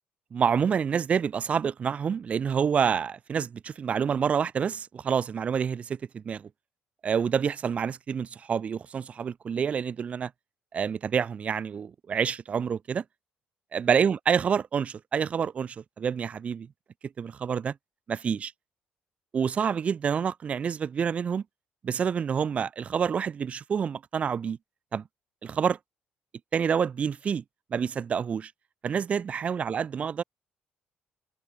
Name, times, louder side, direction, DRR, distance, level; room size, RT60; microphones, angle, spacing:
voice 1, 0.3-6.5 7.0-10.3 10.7-13.0 13.7-16.7 17.2-17.7 18.1-18.5 19.3-21.4 21.8-24.6 24.9-25.0 25.4-25.8 26.5-27.4 27.7-28.5 28.8-30.2, right 7 dB, 35° right, 0.5 m, -28 dB
cardioid pair, 130°, 4 cm